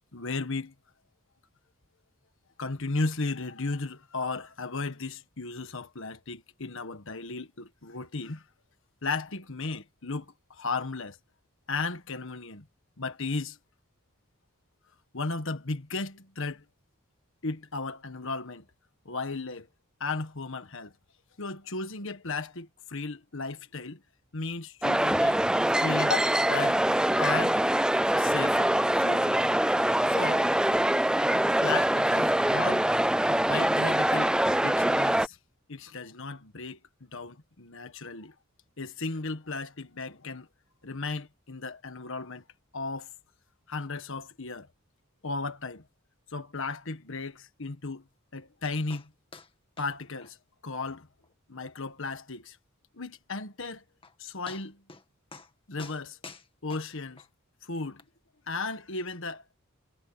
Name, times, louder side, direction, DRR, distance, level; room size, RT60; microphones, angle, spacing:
voice 1, 0.1-0.7 2.6-8.4 9.0-11.2 11.7-12.6 13.0-13.6 15.1-16.6 17.4-18.6 19.0-19.7 20.0-20.9 21.4-24.0 24.3-25.4 25.8-26.8 27.2-27.6 28.1-29.4 30.1-30.5 31.6-32.9 33.2-35.4 35.7-36.8 37.1-38.3 38.8-40.5 40.8-42.4 42.7-43.1 43.7-44.7 45.2-45.8 46.3-48.0 48.3-49.1 49.8-50.4 50.6-51.1 51.5-52.6 53.0-53.8 54.2-54.8 55.7-56.2 56.6-57.2 57.6-58.0 58.5-59.6, left 3 dB, 60° left, 1.6 m, -35 dB
sound 1, 24.8-35.3, right 1 dB, 5° right, 0.4 m, -24 dB
sound 2, 48.9-49.1 49.3-49.5 49.8-49.9 50.2-50.3 50.7-50.8 51.2-51.3 51.8-51.9 53.6-53.7 54.0-54.2 54.5-55.0 55.3-55.5 55.8-57.3 58.0-58.1, left 4 dB, 25° left, 1.9 m, -47 dB
head